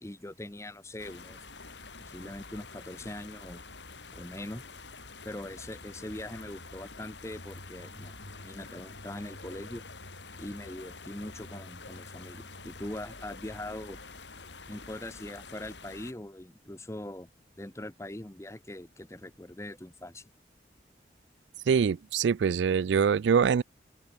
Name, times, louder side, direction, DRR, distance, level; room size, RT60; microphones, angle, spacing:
voice 1, 0.0-1.4 2.0-3.6 4.1-4.6 5.2-9.8 10.4-14.0 14.7-17.3 17.6-20.3, left 1 dB, 15° left, 1.0 m, -42 dB
sound 1, 1.0-16.1, left 3 dB, 85° left, 5.1 m, -47 dB
voice 2, 21.7-23.6, right 6 dB, 85° right, 0.4 m, -24 dB
open air
head